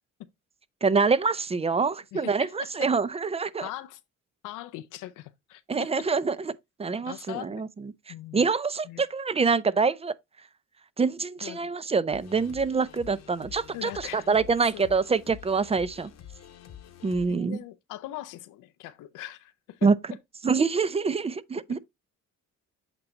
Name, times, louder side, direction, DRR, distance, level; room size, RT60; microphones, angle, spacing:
voice 1, 0.8-3.7 5.7-6.5 6.8-7.9 8.3-10.1 11.0-16.1 17.0-17.6 19.8-19.9 20.4-21.8, right 4 dB, 20° right, 0.4 m, -25 dB
voice 2, 2.1-2.9 3.6-4.0 4.4-6.1 7.0-7.6 8.1-8.5 8.8-9.0 11.4-11.7 13.7-14.8 17.3-19.9 21.7-21.8, left 14 dB, 90° left, 0.6 m, -41 dB
sound 1, 12.1-17.3, left 9 dB, 60° left, 1.0 m, -47 dB
7.9 x 2.8 x 4.3 m
cardioid pair, 90°, 30 cm